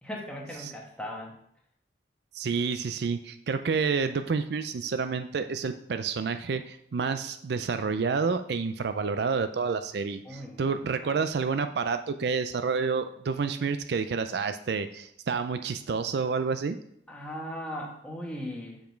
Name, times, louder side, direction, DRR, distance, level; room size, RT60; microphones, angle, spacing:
voice 1, 0.0-1.3 10.2-10.8 11.1-11.2 17.1-18.8, equal, 5° left, -1 dB, 1.2 m, -38 dB
voice 2, 2.3-16.8, right 5 dB, 65° right, 10 dB, 0.4 m, -29 dB
7.2 x 5.1 x 4.5 m, 0.72 s
head